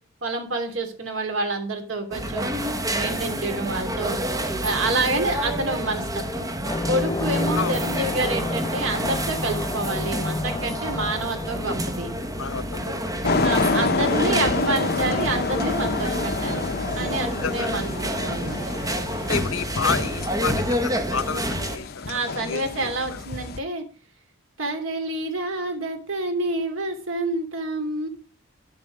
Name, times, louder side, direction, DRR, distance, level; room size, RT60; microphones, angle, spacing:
voice 1, 0.2-4.2 4.6-6.5 6.9-12.1 13.4-16.7 17.0-18.8 22.1-23.8 24.6-28.1, right 2 dB, 85° right, 2.8 m, -28 dB
sound 1, 2.1-21.8, equal, 20° right, 1.2 m, -28 dB
sound 2, 6.6-12.8, left 2 dB, 20° left, 0.3 m, -31 dB
voice 2, 12.4-13.1 17.3-17.8 19.3-23.2, left 5 dB, 80° left, 0.8 m, -30 dB
sound 3, 13.2-23.6, left 4 dB, 50° left, 0.7 m, -28 dB
9.6 x 7.1 x 5.2 m
head